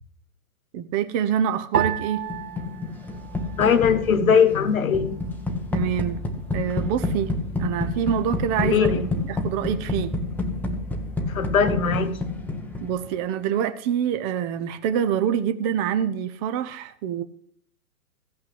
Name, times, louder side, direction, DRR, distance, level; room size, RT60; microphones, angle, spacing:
voice 1, 0.7-2.3 5.7-6.2 6.5-7.3 7.6-10.2 12.8-17.2, right 9 dB, 25° right, 0.8 m, -26 dB
sound 1, 1.7-4.3 4.5-5.4 6.1-6.5, right 8 dB, 80° right, 1.6 m, -32 dB
sound 2, 2.3-13.2, left 2 dB, 5° left, 0.9 m, -29 dB
voice 2, 3.6-5.2 8.6-9.1 11.3-12.2, left 6 dB, 65° left, 1.5 m, -20 dB
15.5 x 5.7 x 7.7 m
figure-of-eight pair, 120°, 44 cm